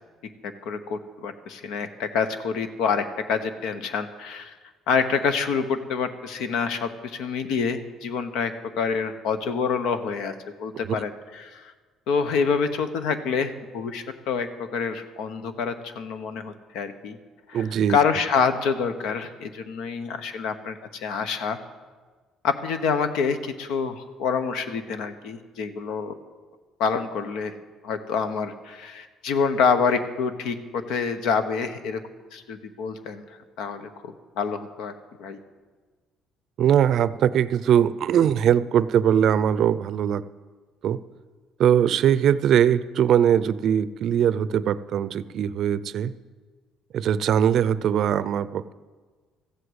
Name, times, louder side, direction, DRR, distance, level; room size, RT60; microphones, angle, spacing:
voice 1, 0.4-4.6 4.9-11.7 12.1-17.2 17.5-21.6 22.4-26.1 26.8-27.5 27.8-32.0 32.3-33.2 33.6-34.9 35.2-35.4, left 5 dB, 80° left, 10 dB, 1.1 m, -27 dB
voice 2, 17.5-18.0 36.6-40.2 40.8-41.0 41.6-46.1 46.9-48.7, right 9 dB, 55° right, 16 dB, 0.5 m, -21 dB
14.5 x 7.9 x 8.1 m, 1.4 s
cardioid pair, 130°, 0 cm